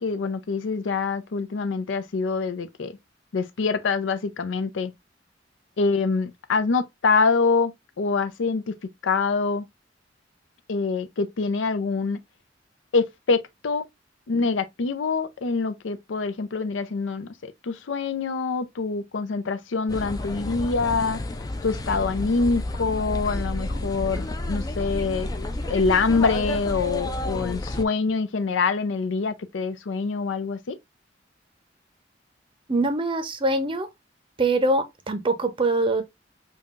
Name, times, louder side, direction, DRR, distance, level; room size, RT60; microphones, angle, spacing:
voice 1, 0.0-3.0 3.3-4.9 5.8-8.7 9.0-9.7 10.7-12.2 12.9-13.9 14.3-21.2 21.6-25.3 25.7-30.8, left 4 dB, 85° left, 0.5 m, -25 dB
sound 1, 19.9-27.8, left 1 dB, 20° left, 0.4 m, -30 dB
voice 2, 32.7-33.9 34.4-36.0, right 2 dB, 30° right, 0.6 m, -23 dB
5.4 x 2.3 x 2.4 m
head